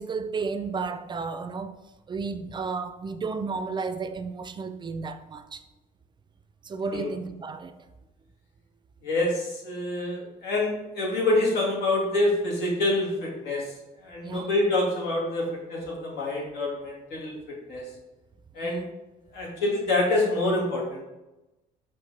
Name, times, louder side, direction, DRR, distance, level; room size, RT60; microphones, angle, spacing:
voice 1, 0.0-1.8 2.1-5.6 6.6-7.7 14.2-14.5 18.6-18.9, right 4 dB, 25° right, 0.4 m, -33 dB
voice 2, 9.0-13.7 14.0-17.4 17.7-17.8 18.5-18.8 19.3-21.0, left 2 dB, 85° left, 1.9 m, -26 dB
5.6 x 5.4 x 3.3 m
cardioid pair, 110°, 17 cm